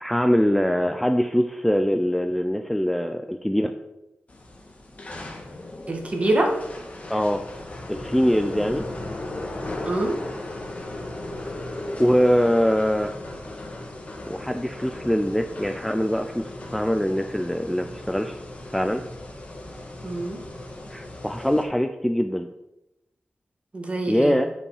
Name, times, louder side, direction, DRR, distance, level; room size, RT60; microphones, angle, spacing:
voice 1, 0.0-3.7 7.1-7.4 7.9-8.9 12.0-13.2 14.3-18.4 18.7-19.0 20.9-22.5 24.1-24.5, equal, 5° left, 6 dB, 0.4 m, -23 dB
sound 1, 4.3-21.6, left 1 dB, 35° left, 1.5 m, -37 dB
voice 2, 5.9-6.5 8.6-8.7 9.8-10.1 20.0-20.4 23.7-24.4, right 1 dB, 30° right, 1 dB, 1.8 m, -25 dB
9.7 x 5.4 x 4.9 m, 0.91 s
wide cardioid pair, 145°, 4 cm